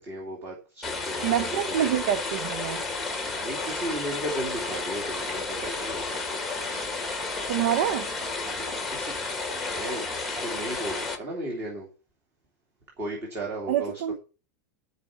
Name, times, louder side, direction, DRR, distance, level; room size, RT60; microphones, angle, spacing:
voice 1, 0.0-2.0 3.4-6.2 8.5-9.1 9.5-10.1 10.4-11.9 13.0-14.0, right 1 dB, 25° right, 2.6 m, -35 dB
sound 1, 0.8-11.2, left 3 dB, ahead, 1.4 m, -32 dB
voice 2, 1.2-2.8 7.5-8.1 13.7-14.2, right 11 dB, 50° right, 0.6 m, -26 dB
12.0 x 4.9 x 7.2 m
supercardioid pair, 180°, 9 cm